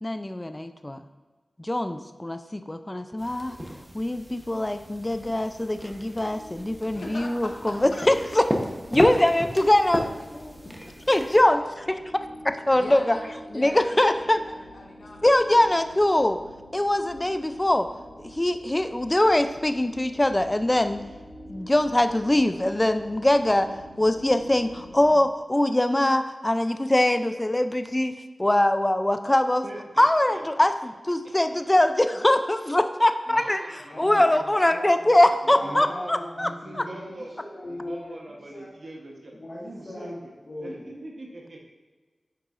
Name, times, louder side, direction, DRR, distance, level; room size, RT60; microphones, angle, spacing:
voice 1, 0.0-1.0 1.6-3.5 3.9-8.5 8.9-10.6 11.1-12.0 12.4-13.2 13.5-14.4 15.2-16.4 16.7-17.9 18.2-21.0 21.5-28.1 28.4-29.6 30.0-33.6 34.0-36.5 36.8-36.9, left 1 dB, 20° left, 8 dB, 0.4 m, -22 dB
sound 1, 3.2-11.4, equal, 5° right, 0.9 m, -34 dB
sound 2, 5.8-25.1, equal, 85° right, 1.6 m, -47 dB
voice 2, 6.9-7.8 10.6-10.7 12.7-15.5, left 1 dB, 75° left, -2 dB, 1.2 m, -40 dB
voice 3, 29.6-30.7 31.5-31.6 33.3-34.4 35.4-37.3 37.7-39.3 39.6-40.3 40.6-41.7, right 1 dB, 60° right, -1 dB, 1.0 m, -42 dB
voice 4, 33.9-35.2 35.4-38.7 39.4-40.2 40.5-40.9, left 1 dB, 55° left, -7 dB, 1.4 m, -38 dB
10.0 x 3.9 x 2.5 m, 1.3 s
wide cardioid pair, 55°, 0 cm